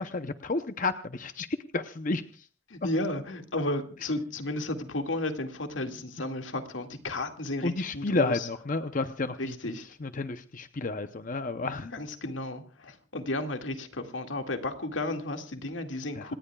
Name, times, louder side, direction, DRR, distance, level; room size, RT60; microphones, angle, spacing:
voice 1, 0.0-1.5 1.7-2.2 7.6-9.5 10.0-11.9 16.2-16.3, left 3 dB, 45° left, 9 dB, 0.7 m, -31 dB
voice 2, 2.7-8.5 9.4-9.9 11.9-16.4, left 2 dB, 85° left, 5 dB, 2.1 m, -33 dB
27.5 x 19.0 x 2.4 m, 0.37 s
head